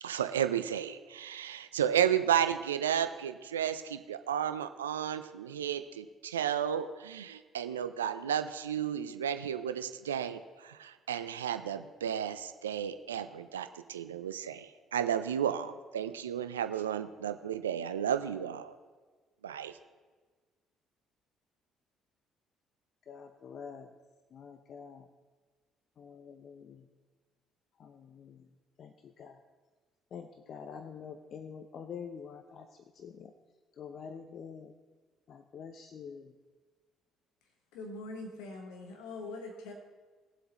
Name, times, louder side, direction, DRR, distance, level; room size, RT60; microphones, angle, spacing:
voice 1, 0.0-18.7 19.4-19.8, right 9 dB, 85° right, 11 dB, 0.5 m, -33 dB
voice 2, 23.1-23.9 24.3-25.0 26.0-26.8 27.8-28.4 28.8-28.9 29.2-29.3 30.1-32.7 33.0-33.3 33.8-34.7 35.3-36.3, left 6 dB, 55° left, 8 dB, 0.7 m, -46 dB
voice 3, 37.7-39.7, left 2 dB, 70° left, 2 dB, 1.3 m, -43 dB
20.0 x 7.8 x 3.1 m, 1.4 s
hypercardioid pair, 50°, 0 cm